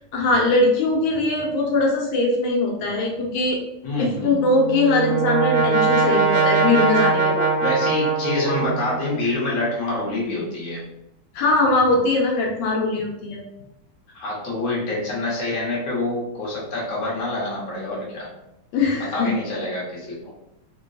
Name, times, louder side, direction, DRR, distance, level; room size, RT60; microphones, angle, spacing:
voice 1, 0.1-3.6 4.0-7.5 11.3-13.4 18.7-19.3, left 2 dB, 85° left, 0 dB, 1.4 m, -21 dB
voice 2, 3.8-4.4 7.6-10.8 14.1-18.3 19.0-20.3, left 2 dB, 50° left, -6 dB, 1.3 m, -26 dB
Brass instrument, 4.4-9.2, right 4 dB, 85° right, 1.7 m, -21 dB
3.8 x 2.2 x 2.6 m, 0.84 s
omnidirectional pair, 2.2 m